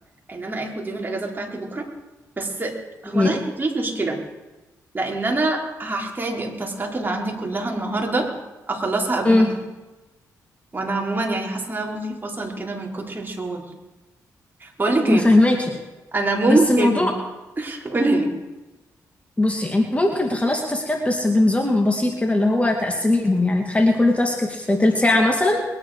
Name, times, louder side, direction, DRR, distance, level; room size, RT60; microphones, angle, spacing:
voice 1, 0.3-1.9 2.4-2.8 3.0-4.2 4.9-8.3 8.7-9.4 10.7-13.7 14.6-15.3 16.1-17.1 17.6-18.3, right 2 dB, 30° right, 0 dB, 3.8 m, -25 dB
voice 2, 15.0-15.8 16.5-17.1 19.4-25.6, left 2 dB, 20° left, 2 dB, 2.2 m, -19 dB
21.5 x 10.0 x 4.9 m, 1.1 s
supercardioid pair, 55°, 7 cm